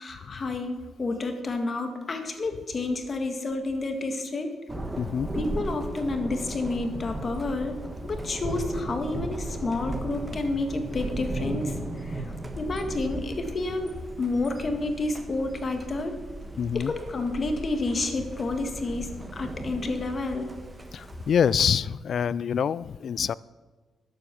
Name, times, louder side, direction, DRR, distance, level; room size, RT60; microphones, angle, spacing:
voice 1, 0.0-4.6 5.3-7.8 8.0-12.2 12.6-16.2 16.7-20.5, left 2 dB, 40° left, 6 dB, 1.8 m, -30 dB
Thunder, 4.7-21.7, right 2 dB, 20° right, 1.3 m, -36 dB
voice 2, 5.0-5.3 16.6-16.9 20.9-23.3, left 7 dB, 60° left, 21 dB, 0.3 m, -25 dB
11.5 x 8.0 x 7.1 m, 1.3 s
cardioid pair, 95°, 0 cm